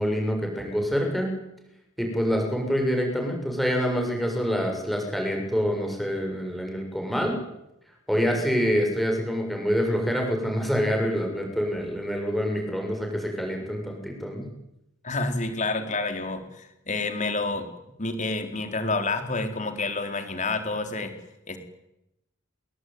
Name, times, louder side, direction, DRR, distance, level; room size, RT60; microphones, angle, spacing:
voice 1, 0.0-1.3 2.0-7.3 8.1-14.5, equal, ahead, 1 dB, 7.2 m, -26 dB
voice 2, 15.0-17.7 18.0-21.1 21.5-21.6, left 3 dB, 35° left, 7 dB, 3.9 m, -29 dB
29.5 x 21.0 x 9.5 m, 0.87 s
head